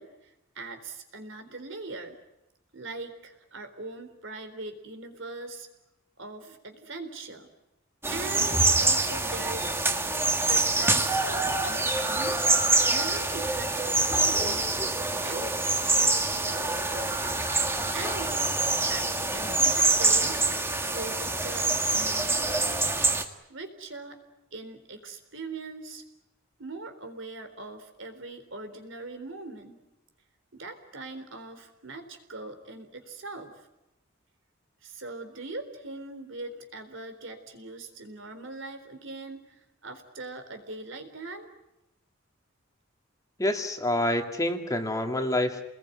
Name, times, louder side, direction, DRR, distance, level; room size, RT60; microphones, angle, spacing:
voice 1, 0.0-2.2 2.7-5.7 6.2-7.5 8.1-9.8 10.4-12.4 12.9-14.8 15.2-17.2 17.9-18.5 18.9-20.4 20.9-23.0 23.5-24.2 24.5-26.0 26.6-29.8 30.5-33.7 34.8-41.5, right 3 dB, 70° right, 8 dB, 4.0 m, -41 dB
sound 1, 8.0-23.2, right 2 dB, 10° right, 1.9 m, -25 dB
voice 2, 43.4-45.6, left 1 dB, 15° left, 5 dB, 2.1 m, -27 dB
29.5 x 21.0 x 9.4 m, 0.92 s
head